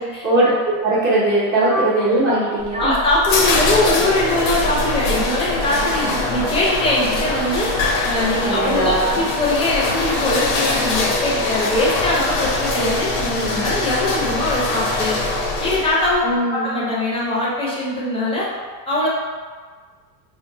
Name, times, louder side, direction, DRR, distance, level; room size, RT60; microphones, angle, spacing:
voice 1, 0.0-2.9 5.8-6.1 8.4-9.2 16.2-16.7, right 2 dB, 25° right, -11 dB, 0.7 m, -20 dB
sound 1, 2.6-16.1, left 2 dB, 85° left, 0.7 m, -22 dB
voice 2, 2.7-7.7 8.0-15.2 15.6-16.2 16.5-18.5 18.9-19.1, left 2 dB, 10° left, -5 dB, 0.6 m, -21 dB
2.2 x 2.2 x 3.6 m, 1.5 s
supercardioid pair, 120°, 49 cm